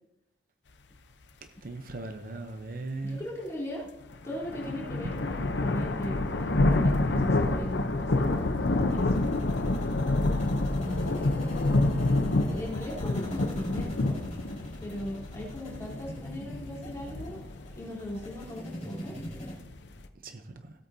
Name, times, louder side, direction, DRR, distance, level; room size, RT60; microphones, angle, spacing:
voice 1, 1.6-3.2 20.2-20.7, right 2 dB, 50° right, 7 dB, 0.8 m, -38 dB
voice 2, 3.0-4.0 4.2-8.3 8.7-9.2 10.8-11.2 12.4-14.2 14.8-17.4 17.7-19.2, left 1 dB, 15° left, -5 dB, 3.9 m, -39 dB
sound 1, 4.1-20.1, left 2 dB, 70° left, 0.8 m, -28 dB
sound 2, 8.9-19.6, equal, 40° left, 4.7 m, -43 dB
17.0 x 8.6 x 2.8 m, 0.85 s
head